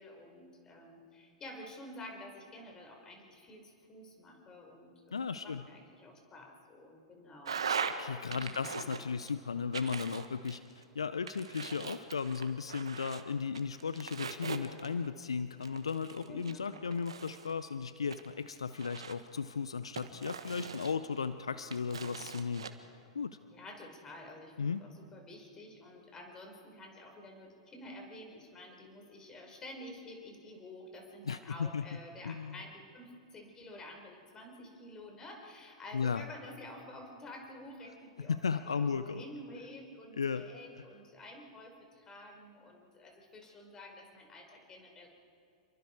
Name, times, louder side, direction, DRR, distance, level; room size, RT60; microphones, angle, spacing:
voice 1, 0.0-7.6 8.3-8.8 16.3-16.7 23.5-45.1, left 1 dB, 20° left, 2 dB, 5.2 m, -50 dB
voice 2, 5.1-5.6 8.0-22.7 23.1-23.4 24.6-24.9 31.2-31.9 32.2-32.5 35.9-36.2 38.3-39.2 40.2-40.4, left 5 dB, 80° left, 12 dB, 0.7 m, -35 dB
sound 1, 7.4-8.0 8.3-9.3 9.7-10.8 11.3-13.2 13.5-15.1 15.6-17.5 18.1-19.3 20.0-21.3 21.7-22.7, right 6 dB, 75° right, 1.5 m, -40 dB
28.0 x 23.0 x 4.8 m, 2.5 s
figure-of-eight pair, 95°, 3 cm